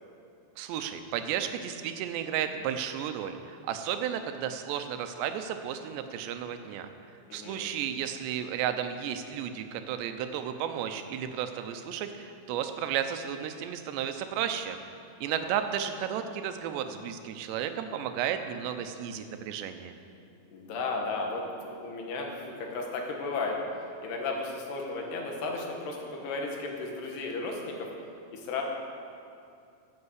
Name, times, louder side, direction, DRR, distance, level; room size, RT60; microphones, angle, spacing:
voice 1, 0.6-6.9 7.3-14.8 15.2-19.9, right 9 dB, 85° right, 8 dB, 3.0 m, -33 dB
voice 2, 7.3-7.7 15.4-15.6 20.5-23.6 24.0-27.9 28.3-28.6, left 3 dB, 75° left, 1 dB, 3.6 m, -34 dB
12.5 x 8.9 x 8.2 m, 2.5 s
omnidirectional pair, 4.9 m